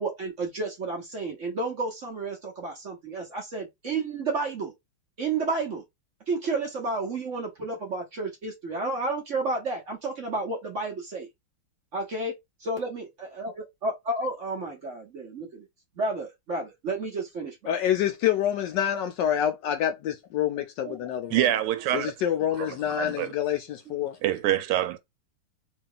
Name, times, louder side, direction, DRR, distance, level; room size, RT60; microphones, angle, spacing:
voice 1, 0.0-4.7 5.2-5.8 6.3-11.3 11.9-12.3 12.6-13.0 13.4-13.5 13.8-15.6 15.9-17.7 20.8-21.1 21.9-22.0 23.9-24.0, right 3 dB, 50° right, 0.9 m, -31 dB
voice 2, 17.7-21.5 21.9-24.2, left 10 dB, 75° left, 1.0 m, -27 dB
voice 3, 21.3-22.1 22.6-23.3 24.2-25.0, right 12 dB, 85° right, 1.5 m, -26 dB
3.1 x 2.9 x 3.7 m
omnidirectional pair, 2.4 m